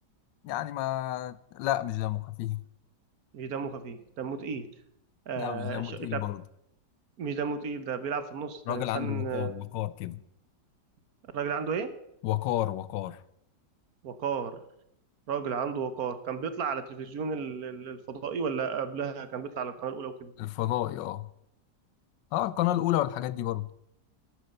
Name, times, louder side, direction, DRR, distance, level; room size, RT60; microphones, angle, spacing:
voice 1, 0.4-2.6 5.4-6.4 8.7-10.2 12.2-13.2 20.4-21.3 22.3-23.7, left 14 dB, 90° left, 1.3 m, -30 dB
voice 2, 3.3-4.7 5.3-6.2 7.2-9.5 11.3-12.0 14.0-14.6 15.3-20.3, right 6 dB, 60° right, 1.4 m, -33 dB
11.0 x 9.4 x 6.5 m
omnidirectional pair, 1.9 m